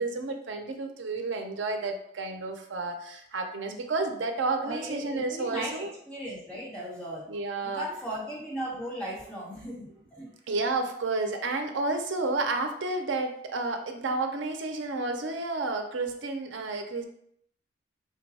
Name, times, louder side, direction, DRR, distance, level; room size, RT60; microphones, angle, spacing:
voice 1, 0.0-5.9 7.3-7.9 10.5-17.0, right 3 dB, 85° right, 5 dB, 0.5 m, -31 dB
voice 2, 4.6-7.3 7.6-10.3, right 1 dB, 5° left, -7 dB, 1.2 m, -37 dB
3.8 x 2.2 x 4.0 m, 0.69 s
head